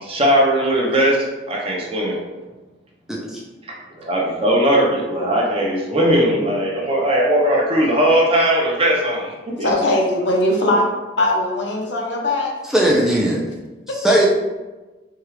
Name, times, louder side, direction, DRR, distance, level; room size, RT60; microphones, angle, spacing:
voice 1, 0.0-2.2 4.0-9.7, right 1 dB, 35° right, -3 dB, 0.8 m, -18 dB
voice 2, 3.1-3.4 12.7-13.4 13.9-14.3, right 1 dB, 5° right, -3 dB, 0.4 m, -18 dB
voice 3, 9.6-10.9 11.2-12.5 13.9-14.0, left 1 dB, 75° left, -1 dB, 0.8 m, -20 dB
4.4 x 2.3 x 3.2 m, 1.2 s
head